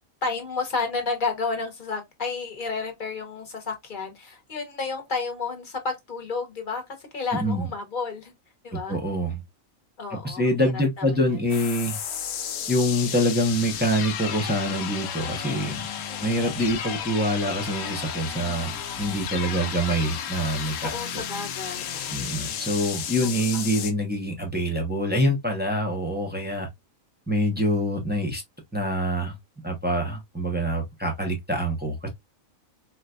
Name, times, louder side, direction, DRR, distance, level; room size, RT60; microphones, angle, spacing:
voice 1, 0.2-6.8 7.1-8.3 8.6-9.0 10.0-10.7 11.0-11.1 16.1-16.5 19.3-19.7 20.8-22.2 23.2-23.3, left 4 dB, 40° left, 1.0 m, -31 dB
voice 2, 7.3-7.7 8.7-9.4 10.1-12.0 12.7-15.9 16.2-21.2 22.1-26.7 27.3-28.4 28.7-29.4 29.6-32.1, equal, 10° right, 0.6 m, -25 dB
sound 1, 11.5-23.9, left 8 dB, 90° left, 1.1 m, -33 dB
4.1 x 2.4 x 2.2 m
omnidirectional pair, 1.4 m